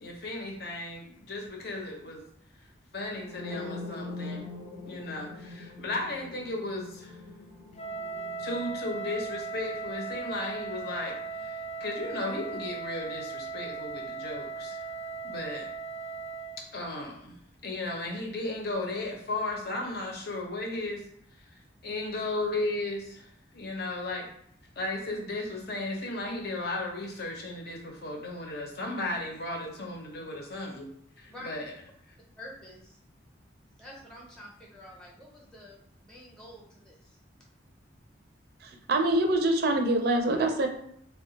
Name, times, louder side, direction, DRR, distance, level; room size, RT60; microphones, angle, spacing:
voice 1, 0.0-2.2 2.9-4.5 4.9-7.2 8.4-11.2 11.4-14.8 15.2-15.7 16.7-17.3 17.6-21.0 21.8-23.3 23.5-24.3 24.8-30.9 31.2-31.6, left 2 dB, 55° left, 0 dB, 0.7 m, -35 dB
sound 1, 3.2-11.0, left 3 dB, 85° left, 1.0 m, -43 dB
Wind instrument woodwind instrument, 7.8-16.6, right 4 dB, 35° left, 0.3 m, -38 dB
voice 2, 32.4-33.0 33.8-37.2, left 1 dB, 5° left, -3 dB, 0.7 m, -48 dB
voice 3, 38.6-40.7, right 1 dB, 55° right, 5 dB, 0.4 m, -25 dB
2.3 x 2.2 x 3.8 m, 0.70 s
head